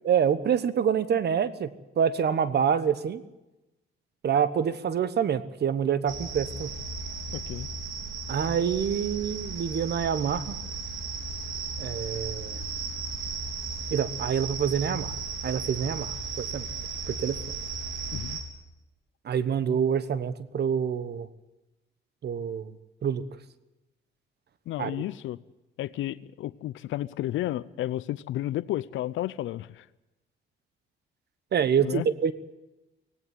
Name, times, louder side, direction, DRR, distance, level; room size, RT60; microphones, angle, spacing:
voice 1, 0.0-1.7 2.0-3.2 4.2-6.7 8.3-10.5 11.8-12.6 13.9-15.2 15.4-16.7 17.1-17.4 19.2-21.3 22.2-22.7 23.0-23.4 24.8-25.0 31.5-32.3, right 7 dB, 55° right, 15 dB, 1.3 m, -26 dB
sound 1, 6.1-18.4, right 4 dB, 85° right, 3.6 m, -35 dB
voice 2, 7.3-7.7 18.1-18.4 24.7-25.4 25.8-29.9 31.8-32.1, left 14 dB, 80° left, 18 dB, 0.6 m, -32 dB
18.0 x 17.0 x 9.3 m, 1.0 s
cardioid pair, 90°, 20 cm